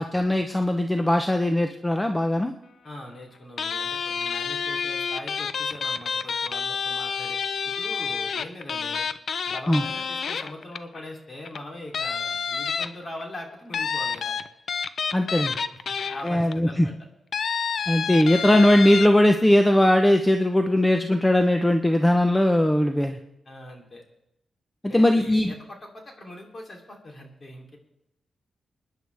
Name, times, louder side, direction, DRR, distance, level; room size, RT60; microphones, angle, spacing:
voice 1, 0.0-2.5 9.7-9.8 15.1-15.5 16.2-16.9 17.9-23.2 24.9-25.5, left 1 dB, 10° left, 5 dB, 0.9 m, -20 dB
voice 2, 2.8-7.4 7.6-9.1 9.5-14.4 15.9-16.9 23.4-24.0 24.8-27.8, left 1 dB, 40° left, 1 dB, 3.3 m, -41 dB
sound 1, 3.6-11.0 11.5-11.6 11.9-13.2 13.7-16.5 17.3-19.1, left 6 dB, 65° left, 0.6 m, -29 dB
24.5 x 10.5 x 3.5 m, 0.86 s
cardioid pair, 80°, 0 cm